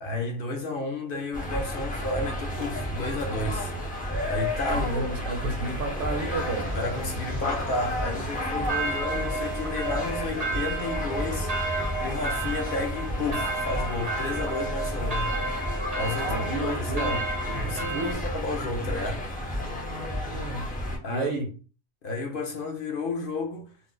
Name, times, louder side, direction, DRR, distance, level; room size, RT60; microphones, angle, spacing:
voice 1, 0.0-3.7 4.2-4.9 6.7-15.4 15.9-17.2 17.5-19.6 21.0-21.4 22.0-23.8, left 3 dB, 55° left, 0.6 m, -32 dB
sound 1, 1.3-21.0, left 1 dB, 10° left, 0.4 m, -32 dB
voice 2, 4.7-6.7 16.2-18.2 19.6-20.7 21.1-21.5, right 3 dB, 65° right, 1.0 m, -32 dB
sound 2, 5.0-14.9, right 3 dB, 90° right, 1.0 m, -46 dB
sound 3, 8.7-18.1, right 3 dB, 40° right, 0.6 m, -32 dB
2.5 x 2.0 x 3.7 m
omnidirectional pair, 1.4 m